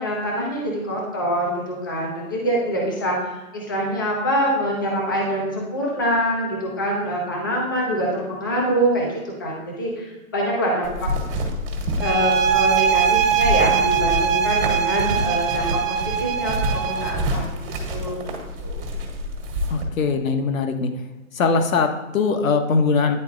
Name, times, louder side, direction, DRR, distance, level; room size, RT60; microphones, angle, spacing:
voice 1, 0.0-11.1 12.0-17.5 17.9-18.2 18.6-18.9, equal, 15° left, -2 dB, 0.5 m, -25 dB
sound 1, 10.8-19.8, equal, 40° right, 1.5 m, -28 dB
sound 2, 12.0-17.3, right 8 dB, 65° right, 0.8 m, -21 dB
voice 2, 19.7-20.9 21.3-23.2, left 4 dB, 70° left, 6 dB, 1.0 m, -21 dB
10.0 x 4.1 x 2.4 m, 1.1 s
hypercardioid pair, 165°, 42 cm